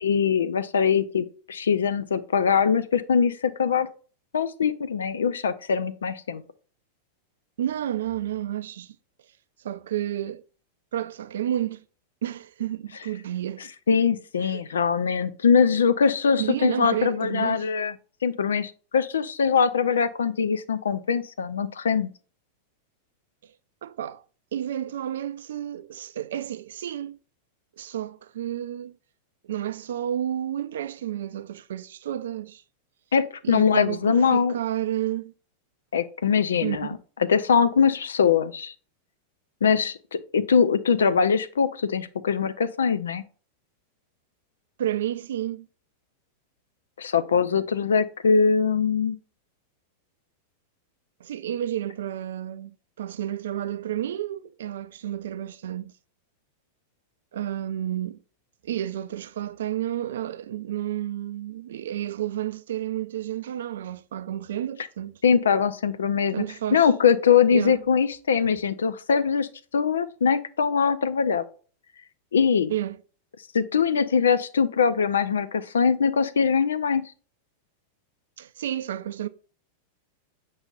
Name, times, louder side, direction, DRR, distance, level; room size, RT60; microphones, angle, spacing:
voice 1, 0.0-3.9 4.3-6.4 13.9-17.9 18.2-22.1 33.1-34.5 35.9-36.9 37.2-38.7 39.6-43.2 47.0-49.2 65.2-66.4 66.7-69.5 69.7-71.4 72.3-72.7 73.5-77.1, left 6 dB, 65° left, 0.5 m, -22 dB
voice 2, 7.6-9.0 9.6-10.4 10.9-11.8 12.2-13.7 14.4-14.6 16.4-17.7 23.8-24.2 24.5-27.2 27.8-29.0 29.4-32.6 33.4-35.3 36.6-37.0 44.8-45.7 51.2-55.9 57.3-58.2 58.6-65.2 66.3-66.9 67.5-67.8 72.7-73.0 78.4-79.3, right 11 dB, 60° right, 0.4 m, -31 dB
7.8 x 5.5 x 2.5 m
figure-of-eight pair, 90°, 0 cm